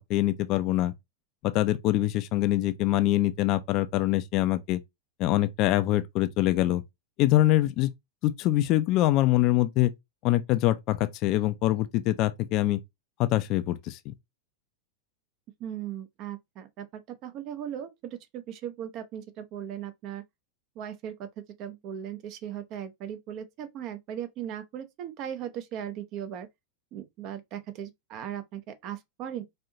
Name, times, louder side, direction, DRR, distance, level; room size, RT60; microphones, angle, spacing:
voice 1, 0.1-0.9 1.4-4.8 5.2-6.8 7.2-7.9 8.2-9.9 10.2-12.8 13.2-14.1, left 15 dB, 40° left, 0.4 m, -24 dB
voice 2, 15.6-20.2 20.8-21.3 21.6-26.5 26.9-29.4, right 10 dB, 40° right, 0.6 m, -38 dB
4.2 x 2.7 x 2.6 m
figure-of-eight pair, 90°, 0 cm